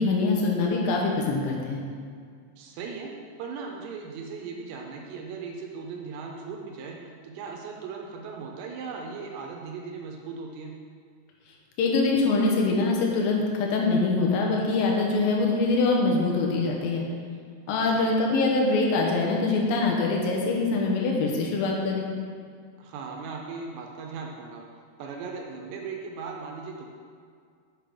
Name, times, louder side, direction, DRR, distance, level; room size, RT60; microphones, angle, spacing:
voice 1, 0.0-1.8 11.8-17.1 17.7-22.1, left 3 dB, 85° left, -1 dB, 2.0 m, -24 dB
voice 2, 2.6-3.1 3.4-10.7 17.7-18.1 22.8-24.6 25.0-26.9, right 5 dB, 75° right, 1 dB, 2.8 m, -38 dB
7.4 x 5.3 x 5.3 m, 2.2 s
omnidirectional pair, 5.5 m